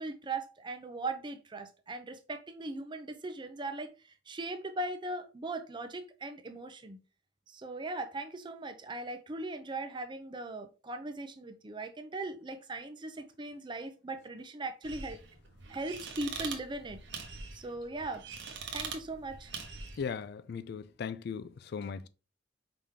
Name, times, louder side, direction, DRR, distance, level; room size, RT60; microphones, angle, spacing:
voice 1, 0.0-3.9 4.3-7.0 7.5-15.2 15.7-17.0 17.5-18.3 18.7-19.5, right 2 dB, 25° right, 0.5 m, -39 dB
sound 1, 14.8-20.1, right 5 dB, 65° right, 1.0 m, -43 dB
voice 2, 20.0-22.1, left 6 dB, 55° left, 0.3 m, -38 dB
5.0 x 3.6 x 2.8 m
head